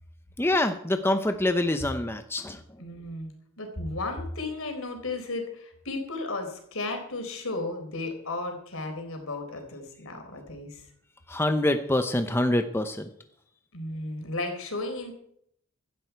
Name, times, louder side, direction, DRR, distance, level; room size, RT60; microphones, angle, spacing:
voice 1, 0.4-2.6 11.3-13.1, left 1 dB, 10° left, 7 dB, 0.7 m, -25 dB
voice 2, 2.8-3.3 3.6-10.9 13.7-15.1, left 2 dB, 75° left, 4 dB, 4.1 m, -34 dB
16.0 x 12.5 x 4.6 m, 0.68 s
head